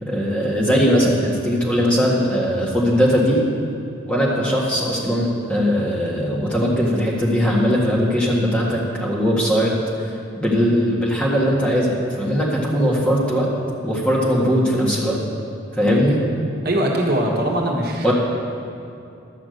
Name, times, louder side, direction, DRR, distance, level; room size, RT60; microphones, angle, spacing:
voice 1, 0.0-3.4 4.1-9.7 10.1-13.5 13.8-15.2 15.8-16.2 18.0-18.1, equal, 5° left, -5 dB, 1.7 m, -19 dB
voice 2, 16.6-18.1, right 1 dB, 50° right, -1 dB, 1.3 m, -21 dB
12.0 x 5.9 x 7.9 m, 2.6 s
head